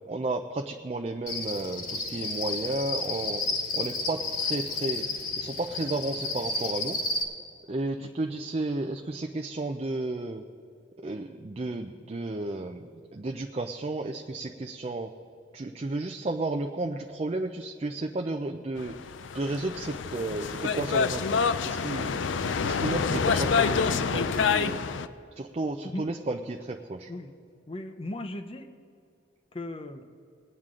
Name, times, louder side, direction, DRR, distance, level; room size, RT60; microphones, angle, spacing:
voice 1, 0.1-3.4 3.7-5.0 5.4-7.0 7.7-10.5 11.0-15.1 15.5-19.0 19.3-22.2 22.6-24.8 25.4-27.1, right 2 dB, 35° right, 4 dB, 0.5 m, -33 dB
Cricket, 1.3-7.2, left 3 dB, 50° left, 1.5 m, -32 dB
sound 1, 18.8-25.1, left 5 dB, 85° left, 0.5 m, -27 dB
voice 2, 27.7-28.7 29.5-30.1, left 1 dB, 30° left, 7 dB, 0.7 m, -37 dB
21.0 x 9.0 x 3.7 m, 2.4 s
head